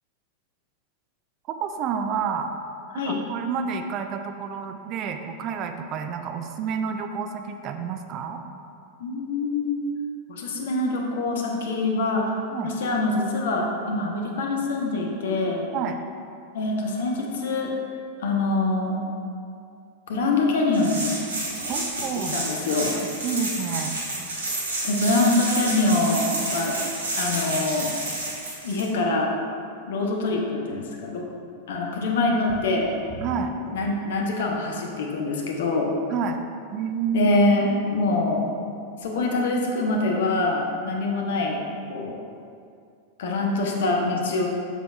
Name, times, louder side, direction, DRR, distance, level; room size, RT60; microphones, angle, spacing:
voice 1, 1.5-2.5 2.9-8.4 12.5-12.7 15.7-16.0 21.7-22.3 23.2-24.0 33.2-33.5 36.1-36.4 36.7-37.3 37.7-37.8, right 6 dB, 35° right, 6 dB, 0.4 m, -29 dB
voice 2, 9.0-9.8 10.3-12.2 12.6-15.6 16.5-17.7 18.2-19.0 20.1-21.1 22.2-22.9 24.8-26.8 27.2-27.9 28.6-29.3 29.9-31.3 31.7-32.9 33.7-35.9 37.1-38.4 39.0-41.6 41.9-42.2 43.2-44.5, left 2 dB, 60° left, 0 dB, 1.0 m, -24 dB
sound 1, 20.7-28.8, right 2 dB, 70° right, 1.4 m, -30 dB
sound 2, 32.5-34.9 35.6-35.7 36.3-36.4, right 2 dB, 15° right, 0.9 m, -42 dB
7.2 x 7.1 x 2.5 m, 2.4 s
figure-of-eight pair, 90°, 0 cm